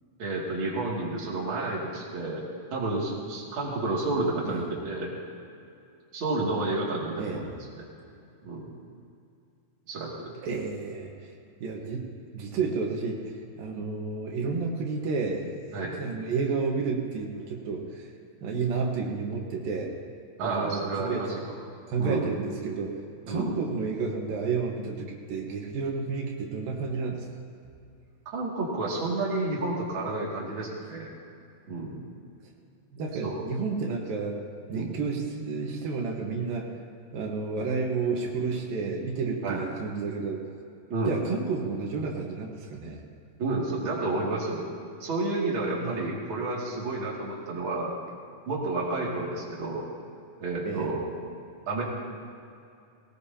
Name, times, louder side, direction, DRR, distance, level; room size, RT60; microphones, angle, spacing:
voice 1, 0.2-5.1 6.1-7.9 8.4-8.7 9.9-10.3 15.7-16.0 20.4-21.5 22.0-22.2 23.2-23.5 28.3-31.1 31.7-32.0 33.2-33.4 34.7-34.9 39.4-39.6 40.9-41.2 43.4-44.7 45.0-47.9 48.5-49.9 50.4-51.4 51.7-51.8, right 2 dB, 40° right, -4 dB, 3.0 m, -30 dB
voice 2, 10.4-11.3 11.6-12.0 12.3-18.1 18.4-19.9 20.4-21.5 21.9-22.9 23.3-27.3 32.9-34.4 34.7-36.7 37.1-40.4 41.1-43.0 45.8-46.2 50.6-50.9, right 4 dB, 85° right, 0 dB, 3.2 m, -31 dB
20.0 x 18.5 x 2.9 m, 2.5 s
omnidirectional pair, 4.0 m